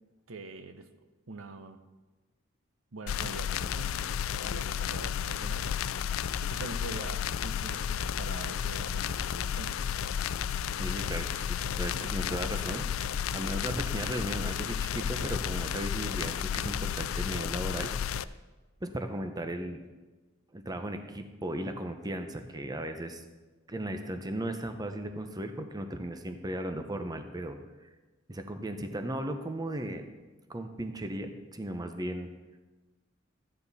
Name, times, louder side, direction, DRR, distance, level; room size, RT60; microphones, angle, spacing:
voice 1, 0.3-0.9 1.3-1.8 2.9-4.0 4.4-5.7 6.4-9.8, right 3 dB, 80° right, 9 dB, 0.8 m, -43 dB
sound 1, 3.1-18.2, left 8 dB, 85° left, 0.4 m, -32 dB
voice 2, 10.8-12.9 13.3-17.9 18.8-19.8 20.5-23.2 23.7-27.6 28.3-30.1 30.5-32.3, right 1 dB, 20° right, 7 dB, 0.8 m, -36 dB
13.5 x 9.5 x 4.1 m, 1.2 s
head